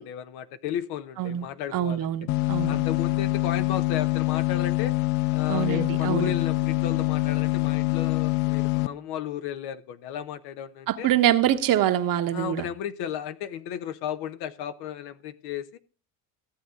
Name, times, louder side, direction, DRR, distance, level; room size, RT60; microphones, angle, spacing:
voice 1, 0.0-2.1 2.7-4.9 5.3-11.1 12.3-15.8, left 9 dB, 60° left, 1.0 m, -34 dB
voice 2, 1.7-2.8 5.5-6.3 10.9-12.7, right 11 dB, 50° right, 1.2 m, -25 dB
sound 1, 2.3-8.9, left 24 dB, 80° left, 0.6 m, -25 dB
14.5 x 8.0 x 3.7 m
supercardioid pair, 90°, 43 cm